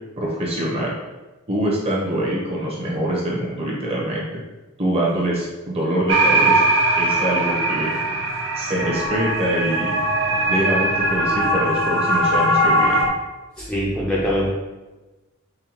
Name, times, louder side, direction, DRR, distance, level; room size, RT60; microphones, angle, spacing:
voice 1, 0.2-0.9 1.5-4.4 4.8-6.6 7.0-7.9 8.6-10.0 10.5-13.0, right 1 dB, 30° right, -4 dB, 0.9 m, -24 dB
sound 1, 6.1-13.1, right 1 dB, 60° right, 0.5 m, -20 dB
voice 2, 13.6-14.5, equal, 5° left, -6 dB, 0.5 m, -23 dB
5.3 x 2.3 x 3.0 m, 1.1 s
head